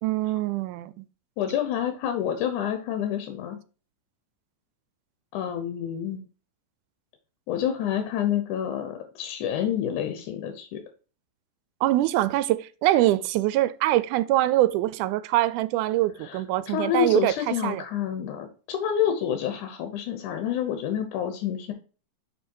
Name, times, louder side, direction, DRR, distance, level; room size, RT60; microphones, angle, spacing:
voice 1, 0.0-1.0 11.8-17.8, right 15 dB, 85° right, 2.0 m, -24 dB
voice 2, 1.4-3.6 5.3-6.2 7.5-10.8 16.2-16.4 16.7-21.7, left 9 dB, 80° left, 2.3 m, -28 dB
6.7 x 4.4 x 4.5 m
omnidirectional pair, 3.5 m